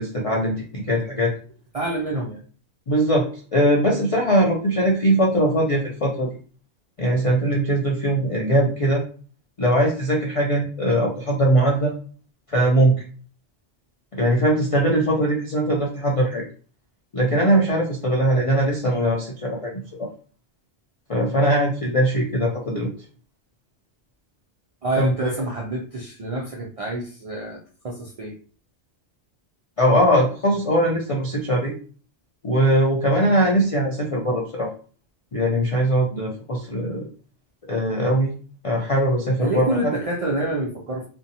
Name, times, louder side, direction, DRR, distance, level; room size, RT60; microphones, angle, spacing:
voice 1, 0.0-1.3 2.9-6.3 7.0-9.0 9.6-11.9 12.5-13.0 14.1-16.5 17.1-19.7 20.0-20.1 21.1-22.9 25.0-25.4 29.8-31.7 32.4-34.7 35.3-37.0 37.7-38.3 38.6-39.9, right 1 dB, 60° left, -2 dB, 0.3 m, -21 dB
voice 2, 1.7-2.4 24.8-27.6 27.8-28.3 39.4-41.0, right 2 dB, 60° right, -2 dB, 0.3 m, -27 dB
2.6 x 2.1 x 2.7 m, 0.41 s
omnidirectional pair, 1.2 m